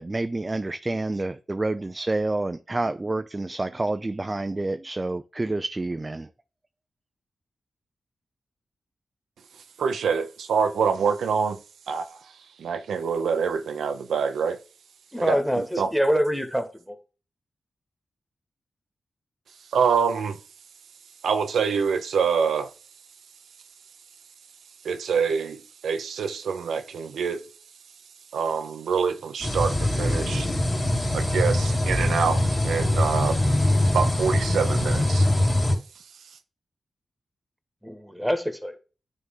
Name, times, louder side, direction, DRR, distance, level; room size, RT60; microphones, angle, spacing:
voice 1, 0.0-6.3, right 2 dB, 30° right, 0.5 m, -28 dB
voice 2, 9.8-11.6 11.9-12.2 12.6-14.6 15.2-15.9 19.7-20.4 21.2-22.7 24.8-27.4 28.3-30.5 31.1-33.4 33.9-35.3, right 6 dB, 85° right, 0.7 m, -26 dB
voice 3, 15.1-17.0 37.8-38.7, equal, 5° right, 1.8 m, -25 dB
sound 1, 29.4-35.7, left 1 dB, 40° left, 2.4 m, -23 dB
9.6 x 3.8 x 3.9 m
supercardioid pair, 45°, 0 cm